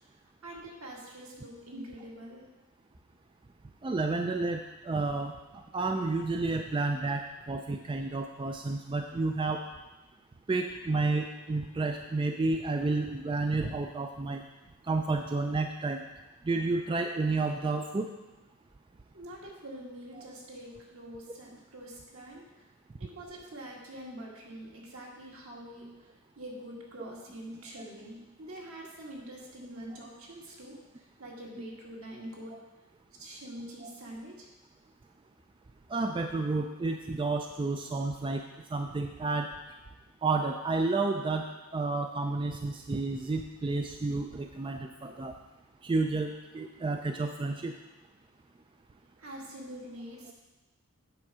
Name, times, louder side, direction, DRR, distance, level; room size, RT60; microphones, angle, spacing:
voice 1, 0.4-2.4 19.1-22.4 23.0-26.1 26.4-32.6 33.1-34.5 49.2-50.3, right 1 dB, 70° right, -2 dB, 1.9 m, -45 dB
voice 2, 3.8-5.3 5.7-9.6 10.5-14.4 14.9-16.0 16.5-18.1 20.2-20.3 33.8-33.9 35.9-38.4 38.7-39.5 40.2-41.5 41.7-45.3 45.8-47.7, right 3 dB, 20° right, 4 dB, 0.3 m, -30 dB
8.8 x 4.6 x 6.0 m, 1.1 s
head